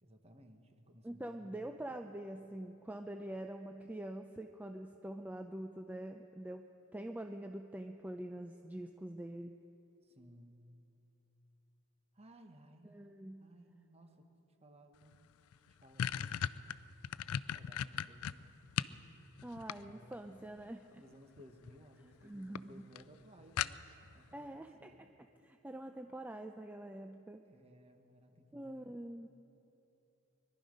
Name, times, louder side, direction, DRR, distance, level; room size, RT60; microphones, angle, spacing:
voice 1, 0.0-2.0 10.0-10.8 12.1-13.1 13.4-14.3 14.6-15.1 15.7-16.4 17.5-18.6 19.8-20.4 20.9-23.8 24.1-25.0 25.6-25.7 27.5-29.0, equal, 30° right, 6 dB, 1.2 m, -60 dB
voice 2, 1.0-6.7 6.9-9.5 12.8-13.5 19.4-21.0 22.2-22.9 24.3-25.1 25.4-27.4 28.5-29.3, right 1 dB, 10° right, 5 dB, 0.4 m, -45 dB
sound 1, 15.1-15.2 15.5-19.0 19.4-20.3 21.4-21.8 22.1-22.2 22.6-22.7 23.0-23.1 23.6-24.1, left 9 dB, 85° left, 0.4 m, -37 dB
22.0 x 12.0 x 5.2 m, 3.0 s
head